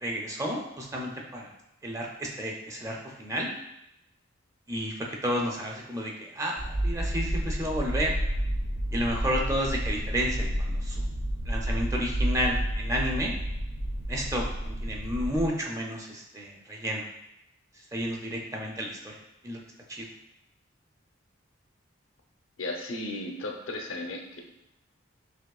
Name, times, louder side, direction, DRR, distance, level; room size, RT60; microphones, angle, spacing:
voice 1, 0.0-1.5 1.8-3.5 4.7-8.2 8.9-11.0 11.5-13.3 14.1-17.0 17.9-19.1 19.4-19.6 19.9-20.1, equal, 15° right, -1 dB, 0.6 m, -31 dB
sound 1, 6.6-15.5, equal, 60° right, 0.6 m, -30 dB
voice 2, 22.6-24.4, left 2 dB, 90° left, 1 dB, 0.7 m, -35 dB
6.2 x 3.0 x 2.3 m, 0.85 s
head